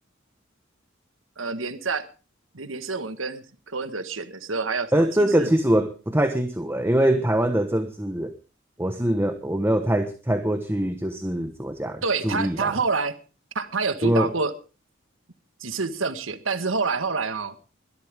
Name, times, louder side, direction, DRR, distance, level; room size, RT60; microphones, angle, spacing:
voice 1, 1.4-2.1 2.5-5.5 12.0-13.1 13.5-14.5 15.6-17.6, right 4 dB, 85° right, 10 dB, 1.6 m, -27 dB
voice 2, 4.9-8.3 8.8-12.7 14.0-14.3, right 1 dB, 10° right, 8 dB, 1.2 m, -23 dB
22.0 x 13.0 x 3.6 m, 0.35 s
head